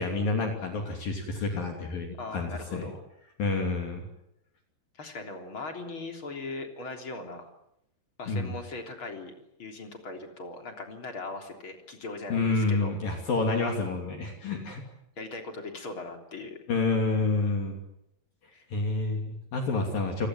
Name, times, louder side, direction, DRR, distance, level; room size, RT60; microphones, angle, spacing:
voice 1, 0.0-2.9 3.4-4.0 8.3-8.5 12.3-14.8 16.7-17.8 18.7-20.3, left 3 dB, 55° left, 3 dB, 4.4 m, -28 dB
voice 2, 2.2-3.0 5.0-7.5 8.2-9.3 9.6-12.9 14.4-14.7 15.2-16.6 18.5-18.7, left 3 dB, 30° left, 4 dB, 3.7 m, -39 dB
29.0 x 19.5 x 9.4 m, 0.79 s
omnidirectional pair, 5.3 m